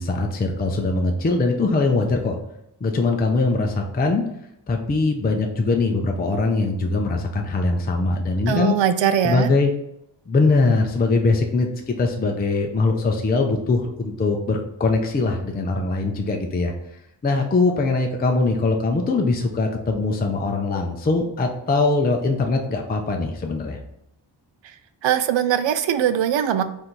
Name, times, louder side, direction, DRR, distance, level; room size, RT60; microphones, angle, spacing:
voice 1, 0.0-2.4 2.8-4.2 4.7-8.7 9.2-9.7 10.3-16.7 17.2-23.8, left 3 dB, 20° left, 2 dB, 0.4 m, -21 dB
voice 2, 8.5-9.5 25.0-26.6, right 9 dB, 80° right, 11 dB, 0.5 m, -21 dB
3.8 x 2.7 x 4.4 m, 0.80 s
wide cardioid pair, 110°, 44 cm